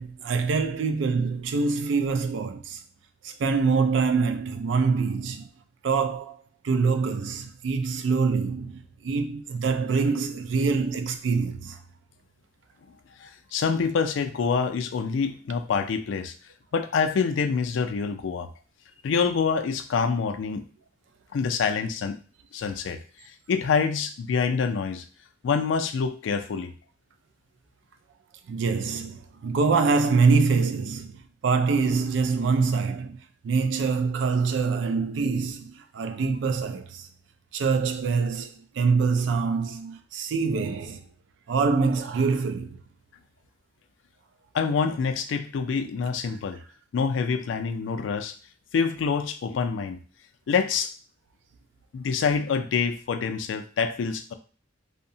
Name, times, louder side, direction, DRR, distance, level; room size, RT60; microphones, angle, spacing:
voice 1, 0.0-2.8 3.2-5.5 5.8-6.4 6.6-11.8 28.5-37.1 37.5-41.0 41.5-42.8, right 4 dB, 70° right, 0.3 m, -25 dB
voice 2, 13.2-16.3 16.7-18.5 19.0-20.7 21.3-22.2 22.5-23.0 23.5-25.0 25.4-26.7 44.5-46.6 46.9-48.3 48.7-50.0 50.5-50.9 51.9-54.3, left 5 dB, 80° left, 0.3 m, -26 dB
2.7 x 2.1 x 2.6 m
head